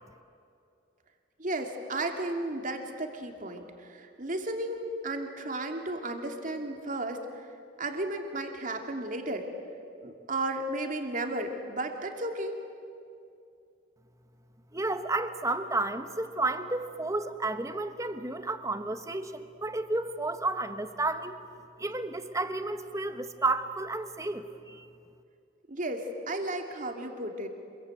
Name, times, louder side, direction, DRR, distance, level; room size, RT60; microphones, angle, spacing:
voice 1, 1.4-7.5 7.8-9.5 10.0-12.5 25.7-27.5, right 2 dB, 45° right, 4 dB, 2.7 m, -34 dB
voice 2, 14.7-21.4 21.8-24.9, right 2 dB, 15° right, 9 dB, 1.2 m, -32 dB
27.0 x 22.5 x 9.2 m, 2.5 s
head